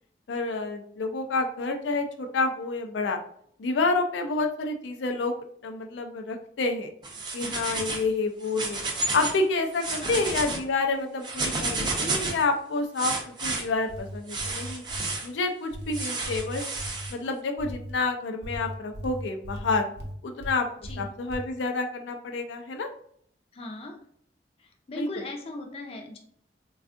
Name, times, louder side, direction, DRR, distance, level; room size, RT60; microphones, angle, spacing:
voice 1, 0.3-3.2 3.6-5.4 5.6-6.9 7.3-8.8 9.1-14.8 15.2-16.7 17.1-19.9 20.2-20.7 21.0-22.9 24.9-25.1, left 3 dB, 90° left, 5 dB, 0.4 m, -28 dB
sound 1, 7.0-8.1 8.4-9.4 9.7-10.6 11.2-12.4 13.0-13.6 14.3-15.3 15.9-17.1, right 3 dB, 25° right, 0.5 m, -31 dB
sound 2, 13.9-15.2 15.7-17.1 17.6-18.0 18.4-20.6 20.8-21.5, equal, 65° right, 0.7 m, -38 dB
voice 2, 23.5-24.0 24.6-26.2, left 2 dB, 35° left, 3 dB, 0.4 m, -38 dB
3.5 x 2.3 x 2.4 m, 0.64 s
head